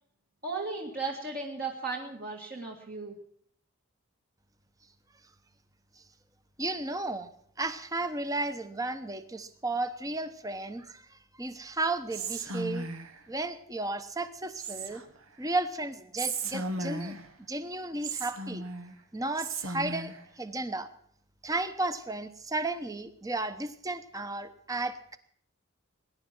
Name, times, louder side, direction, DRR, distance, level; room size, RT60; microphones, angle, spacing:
voice 1, 0.4-3.2, right 3 dB, 45° right, 0 dB, 2.1 m, -35 dB
voice 2, 6.6-7.3 7.6-12.9 13.3-15.0 15.4-18.6 19.1-20.9 21.4-25.2, right 2 dB, 15° right, 11 dB, 0.9 m, -34 dB
Whispering, 12.1-13.2 14.6-15.2 16.2-17.3 18.0-18.9 19.4-20.2, right 3 dB, 90° right, 1.6 m, -35 dB
20.5 x 10.5 x 6.1 m, 0.63 s
head